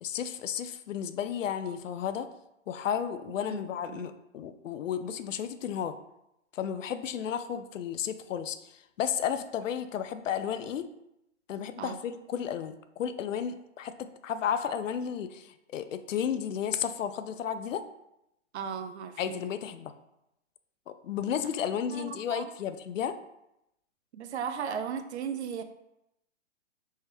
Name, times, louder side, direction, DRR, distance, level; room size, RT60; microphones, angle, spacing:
voice 1, 0.0-2.3 2.7-6.0 6.5-10.9 11.5-17.8 19.2-19.9 20.9-23.2, left 8 dB, 80° left, 11 dB, 0.5 m, -33 dB
voice 2, 3.5-4.1 11.8-12.0 18.5-19.4 21.4-21.5 21.9-22.5 24.1-25.6, right 7 dB, 60° right, 9 dB, 0.5 m, -36 dB
3.4 x 3.2 x 3.2 m, 0.85 s
hypercardioid pair, 145°, 38 cm